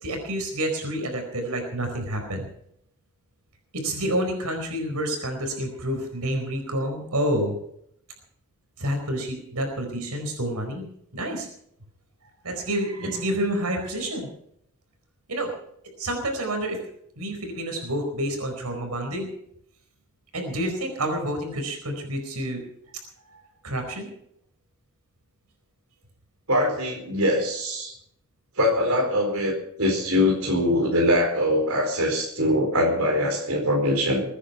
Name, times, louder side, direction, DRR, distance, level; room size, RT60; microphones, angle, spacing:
voice 1, 0.0-2.5 3.7-7.6 8.8-10.9 11.1-11.5 12.4-14.3 15.3-15.5 16.0-16.8 17.2-19.3 20.3-22.6 23.2-24.1, right 1 dB, 90° right, 4 dB, 4.6 m, -28 dB
voice 2, 26.5-27.9 28.6-34.2, left 1 dB, 65° right, 0 dB, 4.4 m, -23 dB
21.5 x 10.0 x 5.7 m, 0.71 s
head